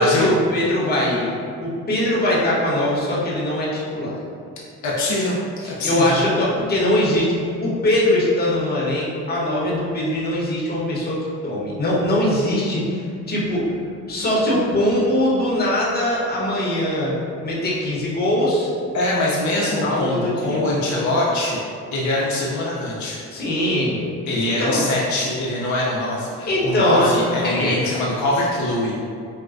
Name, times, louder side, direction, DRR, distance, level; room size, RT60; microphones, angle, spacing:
voice 1, 0.0-1.3 1.6-4.2 5.6-7.3 7.6-11.2 11.4-13.0 13.3-13.7 14.1-17.1 17.4-18.7 19.8-20.6 23.3-24.1 24.4-24.9 26.4-27.1 27.4-27.8, left 1 dB, 30° left, -6 dB, 0.9 m, -21 dB
voice 2, 4.8-5.4 5.7-6.2 18.9-21.6 21.9-23.2 24.3-28.9, left 1 dB, 70° left, -5 dB, 0.6 m, -23 dB
4.1 x 2.1 x 2.4 m, 2.3 s
cardioid pair, 90°, 30 cm